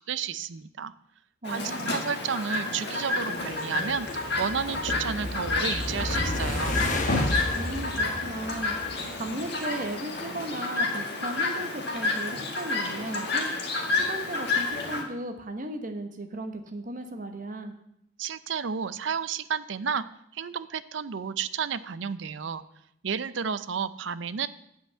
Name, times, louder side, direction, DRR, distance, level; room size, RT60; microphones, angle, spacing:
voice 1, 0.1-0.9 1.4-4.1 4.4-6.8 18.2-20.0 20.3-22.6 23.0-24.5, right 6 dB, 70° right, 14 dB, 0.5 m, -32 dB
Chirp tweet, 1.4-15.0, left 3 dB, 55° left, 1.7 m, -30 dB
voice 2, 1.4-2.0 7.5-8.7 9.1-13.5 13.9-17.7, right 1 dB, 45° right, 6 dB, 1.1 m, -36 dB
sound 1, 3.9-9.2, left 1 dB, 40° left, 1.1 m, -32 dB
8.7 x 5.6 x 7.9 m, 0.74 s
head